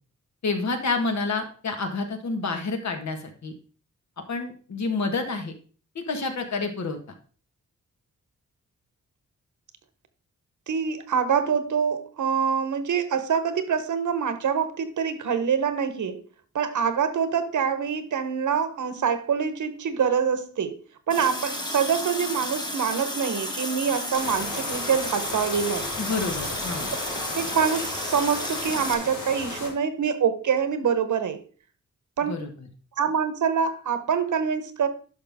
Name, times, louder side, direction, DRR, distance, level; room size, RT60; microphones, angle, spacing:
voice 1, 0.4-3.5 4.3-5.5 5.9-7.0 26.0-26.9 32.2-32.7, left 3 dB, 60° left, 5 dB, 1.6 m, -29 dB
voice 2, 10.7-16.2 16.5-20.8 21.1-25.9 27.3-31.4 32.2-32.5 33.0-34.9, right 7 dB, 75° right, 10 dB, 1.1 m, -25 dB
Water tap faucet, 21.1-28.9, left 1 dB, 15° left, 1.3 m, -33 dB
sound 1, 24.1-29.7, left 3 dB, 80° left, 3.9 m, -35 dB
11.5 x 5.9 x 3.6 m, 0.40 s
wide cardioid pair, 145°, 31 cm